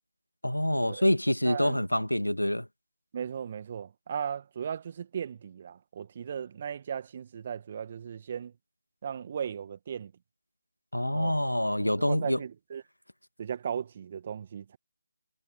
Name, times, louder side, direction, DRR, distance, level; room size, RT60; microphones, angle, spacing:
voice 1, 0.4-2.7 10.9-12.4, left 1 dB, 85° left, 1.8 m, -26 dB
voice 2, 1.4-1.8 3.1-8.5 9.0-10.1 11.1-11.4 12.0-12.8 13.4-14.8, right 8 dB, 35° right, 2.0 m, -36 dB
figure-of-eight pair, 155°, 0 cm